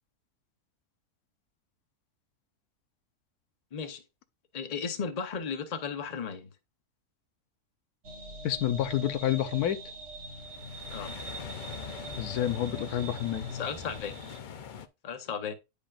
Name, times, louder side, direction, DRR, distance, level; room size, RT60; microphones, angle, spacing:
voice 1, 3.7-4.0 4.5-6.5 10.9-11.2 13.5-14.1 15.0-15.5, left 6 dB, 35° left, 0.8 m, -35 dB
sound 1, 8.0-14.4, right 1 dB, 45° right, 1.4 m, -43 dB
voice 2, 8.4-9.8 12.2-13.4, left 11 dB, 90° left, 1.2 m, -29 dB
sound 2, 10.3-14.9, left 7 dB, 70° left, 0.4 m, -43 dB
10.0 x 5.1 x 2.4 m
omnidirectional pair, 1.6 m